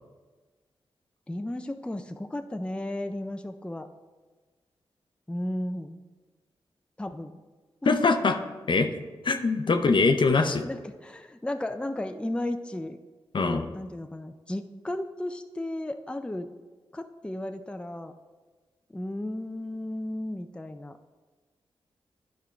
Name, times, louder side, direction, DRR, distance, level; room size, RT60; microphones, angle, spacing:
voice 1, 1.3-3.9 5.3-6.0 7.0-7.4 7.8-7.9 10.3-13.0 13.4-16.5 16.9-18.1 18.9-21.0, left 1 dB, 10° left, 7 dB, 0.5 m, -34 dB
voice 2, 7.9-8.4 8.7-8.9 9.2-10.6 13.3-13.6, left 4 dB, 55° left, 7 dB, 0.6 m, -22 dB
10.0 x 3.6 x 4.4 m, 1.3 s
cardioid pair, 50°, 10 cm